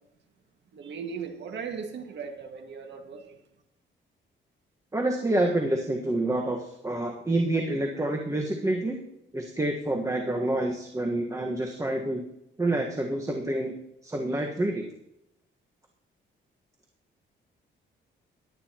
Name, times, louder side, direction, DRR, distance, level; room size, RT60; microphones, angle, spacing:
voice 1, 0.7-3.4, right 6 dB, 65° right, 4 dB, 1.9 m, -38 dB
voice 2, 4.9-9.0 9.3-12.2 12.6-14.8, right 1 dB, 15° right, 1 dB, 1.4 m, -28 dB
17.5 x 11.5 x 3.0 m, 0.84 s
cardioid pair, 110°, 20 cm